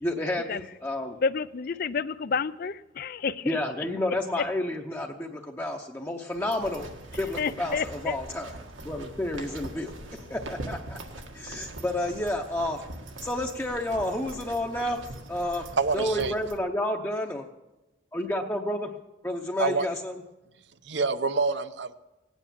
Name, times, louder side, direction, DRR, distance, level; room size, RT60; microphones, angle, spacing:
voice 1, 0.0-1.2 3.4-6.9 7.2-8.5 8.8-11.0 11.3-12.8 13.2-15.7 15.9-17.5 18.1-18.9 19.2-20.1, left 1 dB, 10° left, 0.8 m, -30 dB
voice 2, 1.2-3.6 7.4-8.2, left 5 dB, 50° left, 0.4 m, -30 dB
sound 1, 6.3-16.6, right 2 dB, 80° right, 1.8 m, -42 dB
voice 3, 15.8-16.3 19.6-19.9 20.8-21.9, right 4 dB, 60° right, 0.8 m, -26 dB
18.0 x 9.3 x 7.4 m
head